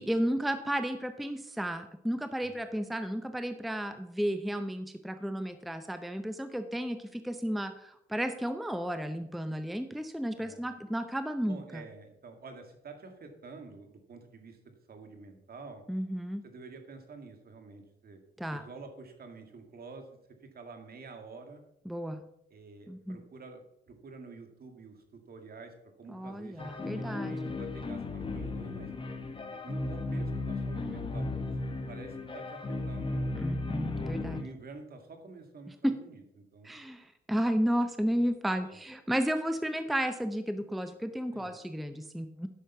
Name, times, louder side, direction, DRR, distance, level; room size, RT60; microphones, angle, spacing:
voice 1, 0.0-11.8 15.9-16.4 18.4-18.7 21.9-22.2 22.9-23.2 26.1-27.3 33.3-34.4 35.8-35.9 36.6-42.5, equal, ahead, 8 dB, 0.7 m, -33 dB
voice 2, 10.3-10.7 11.5-15.8 16.4-18.2 18.5-20.1 20.4-21.6 22.5-28.9 29.6-31.4 31.9-33.3 34.3-36.2 36.5-36.8 38.7-38.8 41.3-41.6, right 4 dB, 50° right, 5 dB, 2.0 m, -49 dB
sound 1, 26.6-34.4, left 2 dB, 25° left, 1.3 m, -35 dB
10.5 x 6.4 x 5.4 m, 0.80 s
cardioid pair, 90°, 20 cm